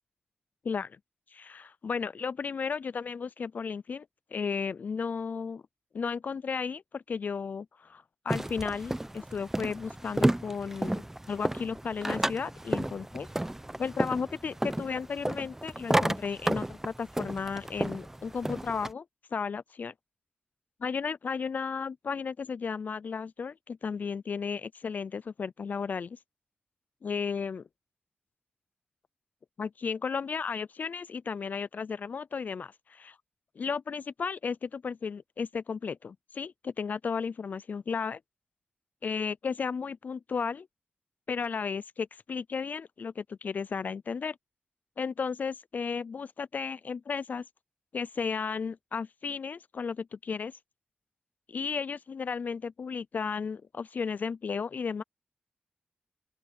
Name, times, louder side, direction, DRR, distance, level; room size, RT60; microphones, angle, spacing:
voice 1, 0.6-1.0 1.3-4.1 4.3-5.6 5.9-11.0 11.3-13.3 13.8-19.0 19.3-19.9 20.8-26.2 27.0-27.6 29.6-33.2 33.6-38.2 39.0-40.7 41.3-44.4 45.0-47.5 47.9-50.6 51.5-55.0, left 5 dB, 60° left, 0.3 m, -34 dB
sound 1, 8.3-18.9, right 1 dB, 10° right, 0.8 m, -32 dB
open air
wide cardioid pair, 90°, 3 cm